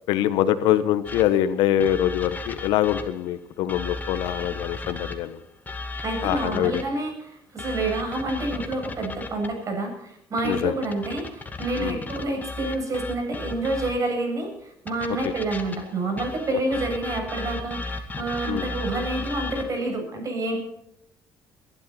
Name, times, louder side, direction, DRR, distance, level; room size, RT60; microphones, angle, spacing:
voice 1, 0.1-5.4 6.2-6.8 10.4-10.7 11.8-12.0 18.5-18.7, left 11 dB, 80° left, 13 dB, 1.2 m, -24 dB
sound 1, 1.0-3.3 3.7-7.1 7.6-9.6 10.4-14.2 14.9-19.8, left 3 dB, 20° left, 2.5 m, -35 dB
voice 2, 6.0-14.5 14.8-20.6, right 2 dB, 45° right, 3 dB, 7.9 m, -28 dB
22.0 x 12.0 x 4.3 m, 0.78 s
cardioid pair, 90°, 8 cm